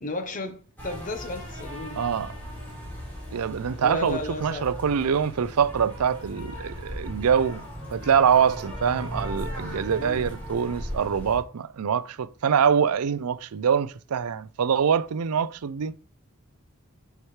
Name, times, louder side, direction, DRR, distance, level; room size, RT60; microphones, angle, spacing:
voice 1, 0.0-2.0 3.8-4.7 10.0-10.3, left 2 dB, 35° left, 0.9 m, -34 dB
sound 1, 0.8-11.4, equal, 10° left, 4.0 m, -37 dB
voice 2, 2.0-2.3 3.3-7.6 7.9-15.9, right 7 dB, 90° right, 0.5 m, -24 dB
9.9 x 4.7 x 3.2 m
head